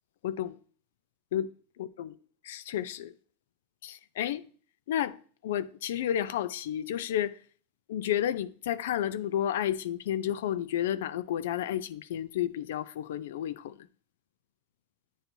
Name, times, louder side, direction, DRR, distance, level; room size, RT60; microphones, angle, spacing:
voice 1, 0.2-0.6 1.3-1.5 1.8-2.1 2.4-3.1 3.8-4.4 4.9-5.2 5.4-7.4 7.9-13.7, left 11 dB, 80° left, 0.4 m, -31 dB
9.1 x 4.4 x 2.6 m
supercardioid pair, 150°, 0 cm